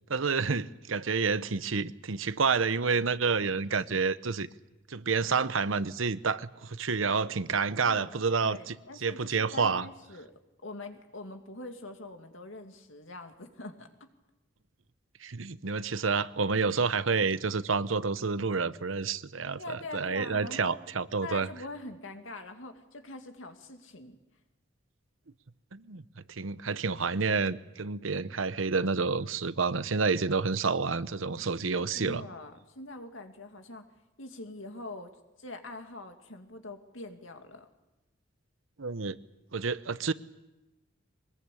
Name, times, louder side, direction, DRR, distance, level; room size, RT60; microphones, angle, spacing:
voice 1, 0.1-4.5 4.9-9.9 15.2-21.5 25.7-32.2 38.8-39.2 39.5-40.1, right 4 dB, 85° right, 14 dB, 0.9 m, -29 dB
voice 2, 8.4-10.3 10.6-14.1 19.6-20.8 21.2-24.2 31.7-33.8 34.2-35.1 35.4-37.7, left 2 dB, 80° left, 5 dB, 2.4 m, -43 dB
23.5 x 21.0 x 8.5 m, 1.0 s
head